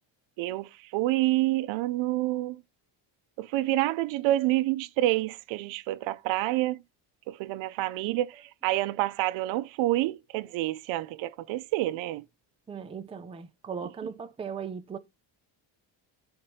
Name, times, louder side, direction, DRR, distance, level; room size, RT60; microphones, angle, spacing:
voice 1, 0.4-2.6 3.4-6.8 7.3-12.2 13.8-13.9, right 16 dB, 80° right, 0.6 m, -28 dB
voice 2, 12.7-15.0, right 6 dB, 15° right, 0.5 m, -38 dB
12.5 x 4.4 x 2.7 m
cardioid pair, 130°, 45 cm